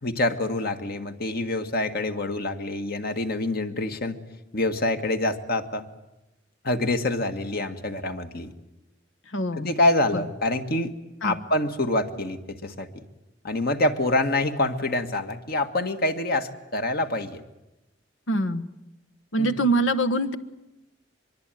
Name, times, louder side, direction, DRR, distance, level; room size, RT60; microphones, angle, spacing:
voice 1, 0.0-4.2 4.5-5.8 6.6-8.5 9.5-10.9 11.2-13.0 13.4-17.4 19.4-19.6, left 2 dB, 55° left, 7 dB, 1.8 m, -26 dB
voice 2, 9.3-9.7 10.1-10.2 11.2-11.4 18.3-18.6 19.3-20.4, right 1 dB, 80° left, 11 dB, 1.3 m, -24 dB
23.5 x 23.0 x 9.2 m, 0.95 s
head